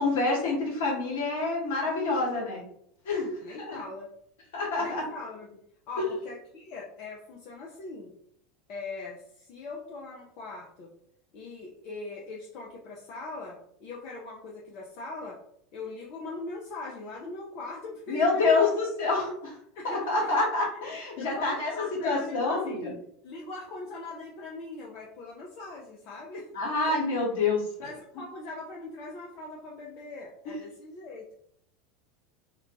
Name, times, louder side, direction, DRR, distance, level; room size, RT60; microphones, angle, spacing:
voice 1, 0.0-2.6 3.0-3.8 4.5-5.0 6.0-6.1 18.1-19.5 19.8-22.9 26.5-27.6, left 3 dB, 65° left, -3 dB, 1.0 m, -27 dB
voice 2, 3.4-4.1 4.8-5.6 5.9-8.1 8.7-10.9 11.3-15.4 15.7-18.7 19.1-19.3 19.7-20.4 21.2-26.5 26.8-26.9 27.8-31.3, left 2 dB, 45° left, -3 dB, 0.5 m, -41 dB
2.4 x 2.2 x 2.9 m, 0.68 s
figure-of-eight pair, 80°, 0 cm